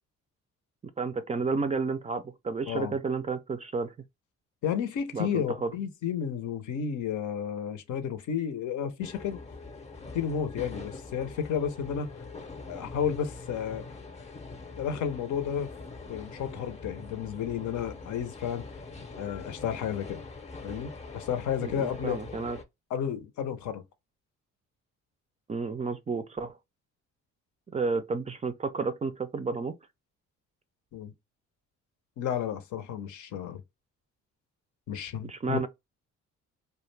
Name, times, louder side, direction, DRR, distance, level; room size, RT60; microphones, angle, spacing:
voice 1, 1.0-3.9 5.1-5.7 21.6-22.6 25.5-26.6 27.7-29.8 35.2-35.7, right 4 dB, 25° right, 0.3 m, -31 dB
voice 2, 4.6-9.4 10.1-12.1 12.7-13.9 14.8-15.7 16.1-18.6 19.2-20.2 20.6-22.2 22.9-23.8 30.9-31.1 32.2-33.6 34.9-35.6, left 8 dB, 75° left, 0.7 m, -32 dB
sound 1, 9.0-22.6, left 3 dB, 20° left, 0.6 m, -43 dB
2.4 x 2.1 x 3.2 m
cardioid pair, 90°, 30 cm